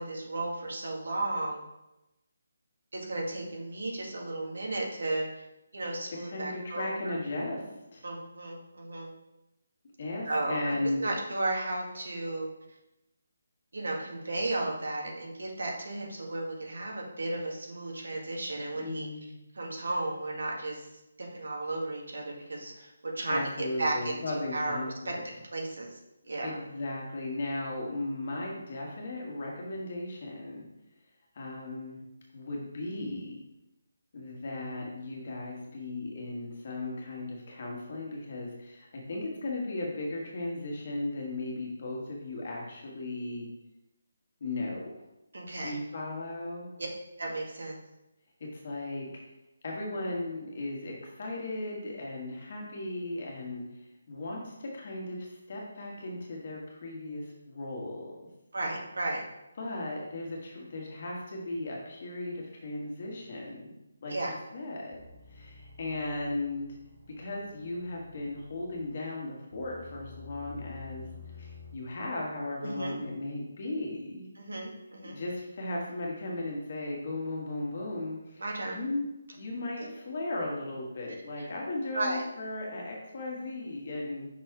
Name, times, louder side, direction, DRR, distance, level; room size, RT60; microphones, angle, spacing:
voice 1, 0.0-1.6 2.9-5.5 5.7-7.2 8.0-9.1 10.3-12.5 13.7-19.1 19.5-20.9 21.2-24.8 25.1-25.2 25.5-26.0 26.3-26.6 45.3-45.8 46.8-46.9 47.2-47.7 58.5-59.2 64.1-64.3 72.6-73.0 74.4-75.2 78.4-78.8 79.8-79.9 81.4-81.5 81.9-82.3, right 2 dB, 85° right, -1 dB, 1.9 m, -34 dB
voice 2, 6.3-7.6 7.9-8.0 10.0-11.1 18.7-19.4 22.4-22.8 23.3-25.2 26.4-30.7 31.3-32.0 32.3-33.4 34.1-43.5 44.4-44.9 45.6-46.7 48.4-49.1 49.6-53.6 54.1-58.2 59.6-63.7 64.0-64.1 64.5-65.0 65.3-66.7 67.2-71.1 71.4-74.2 75.0-79.0 79.3-84.3, left 2 dB, 30° left, -2 dB, 1.4 m, -36 dB
sound 1, 64.9-69.1 69.5-71.7, left 5 dB, 10° right, 1.7 m, -50 dB
5.8 x 4.2 x 4.7 m, 0.94 s
hypercardioid pair, 180°, 0 cm